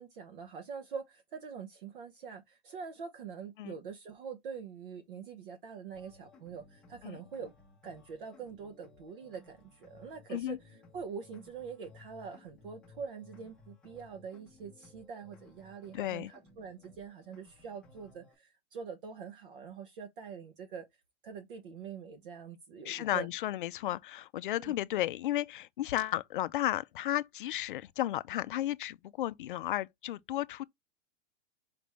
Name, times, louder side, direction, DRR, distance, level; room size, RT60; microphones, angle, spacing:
voice 1, 0.0-7.5 7.8-20.9 21.2-23.3 24.5-24.7, right 6 dB, 55° right, 0.9 m, -44 dB
sound 1, 5.9-18.3, left 3 dB, 5° left, 0.8 m, -59 dB
voice 2, 15.9-16.3 22.8-30.6, left 14 dB, 55° left, 0.4 m, -33 dB
5.0 x 3.5 x 3.0 m
supercardioid pair, 170°, 32 cm